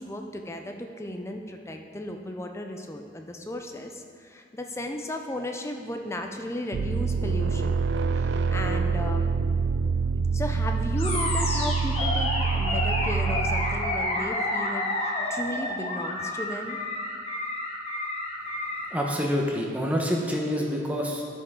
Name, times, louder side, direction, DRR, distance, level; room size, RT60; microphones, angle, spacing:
voice 1, 0.0-7.8 8.1-9.4 10.3-16.8, left 1 dB, 15° left, 4 dB, 0.5 m, -35 dB
sound 1, 6.7-14.2, right 4 dB, 75° right, 0.3 m, -26 dB
Animal, 11.0-18.9, left 1 dB, 35° left, 1.2 m, -30 dB
voice 2, 18.9-21.2, equal, 10° right, -1 dB, 1.0 m, -27 dB
12.0 x 5.6 x 3.7 m, 2.4 s
head